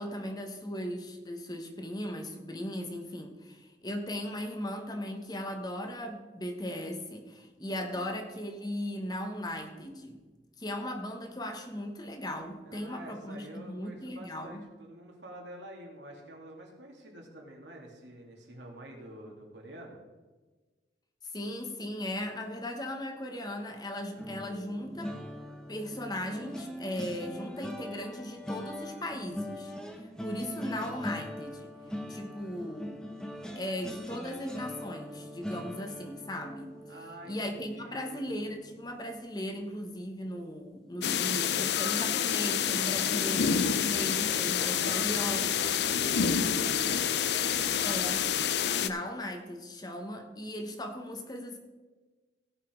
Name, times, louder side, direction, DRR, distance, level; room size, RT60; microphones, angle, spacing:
voice 1, 0.0-10.2 10.6-14.6 21.2-25.2 25.7-31.7 32.1-33.0 33.5-36.7 37.2-45.5 47.8-48.3 48.8-51.6, left 1 dB, 20° left, 4 dB, 1.1 m, -37 dB
voice 2, 12.6-20.0 36.9-38.4 44.8-47.8, right 1 dB, 90° right, 0 dB, 2.6 m, -48 dB
sound 1, 24.2-39.3 39.7-40.0 40.3-40.5, equal, 5° left, 0.9 m, -42 dB
sound 2, 41.0-48.9, left 8 dB, 70° left, 0.5 m, -28 dB
16.5 x 5.8 x 4.5 m, 1.3 s
head